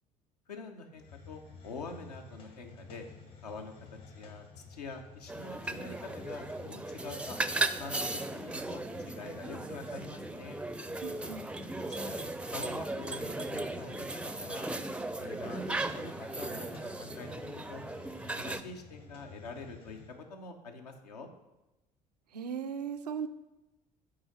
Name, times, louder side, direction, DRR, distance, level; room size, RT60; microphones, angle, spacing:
voice 1, 0.5-3.1 3.4-3.7 4.1-7.4 7.8-10.6 11.8-14.1 14.4-14.7 15.2-17.8 18.4-20.0 20.3-21.3, left 4 dB, 85° left, 4 dB, 0.7 m, -45 dB
Hiss, 0.9-20.2, left 3 dB, 60° left, 1.4 m, -52 dB
sound 1, 5.3-18.6, right 2 dB, 5° right, 0.4 m, -37 dB
voice 2, 11.0-11.5 22.3-23.3, right 7 dB, 85° right, 8 dB, 0.4 m, -37 dB
7.8 x 3.9 x 4.1 m, 0.99 s
figure-of-eight pair, 60°, 20 cm